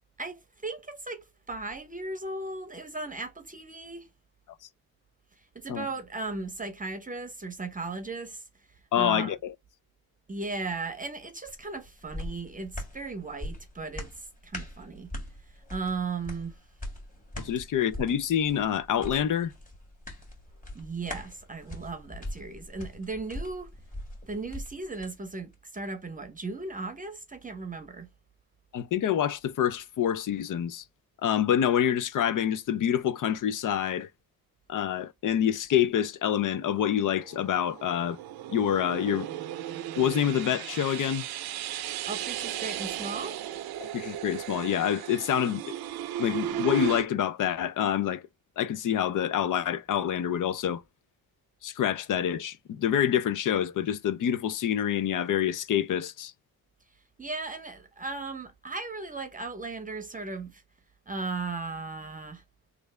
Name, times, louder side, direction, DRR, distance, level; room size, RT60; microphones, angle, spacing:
voice 1, 0.2-4.1 5.5-8.4 8.9-9.3 10.3-15.1 15.7-16.5 20.7-23.7 24.3-28.1 42.0-43.4 57.2-60.6 61.1-62.4, right 3 dB, 20° right, 0.8 m, -36 dB
voice 2, 8.9-9.5 17.4-19.5 28.7-30.8 31.2-34.1 34.7-38.2 38.5-39.3 40.0-41.2 43.8-45.8 46.2-48.2 48.6-50.8 51.6-56.3, left 9 dB, 55° left, 0.6 m, -27 dB
sound 1, 11.5-25.1 25.5-25.6, left 1 dB, 20° left, 1.9 m, -41 dB
sound 2, 36.9-47.1, right 12 dB, 80° right, 0.6 m, -36 dB
3.2 x 2.5 x 3.2 m
cardioid pair, 85°, 37 cm